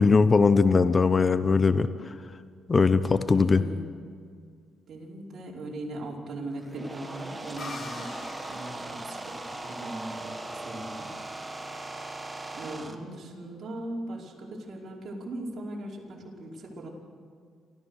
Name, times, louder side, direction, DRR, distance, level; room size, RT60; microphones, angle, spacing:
voice 1, 0.0-1.9 2.7-3.6, left 4 dB, 30° left, 12 dB, 0.8 m, -20 dB
voice 2, 3.3-3.9 4.9-8.1 8.5-11.1 12.5-16.9, right 1 dB, 55° right, -2 dB, 5.0 m, -39 dB
sound 1, 6.5-12.9, right 2 dB, 15° right, 1.7 m, -39 dB
sound 2, 7.6-11.1, left 3 dB, 45° left, 3.6 m, -45 dB
29.5 x 14.0 x 6.5 m, 2.1 s
cardioid pair, 90°, 0 cm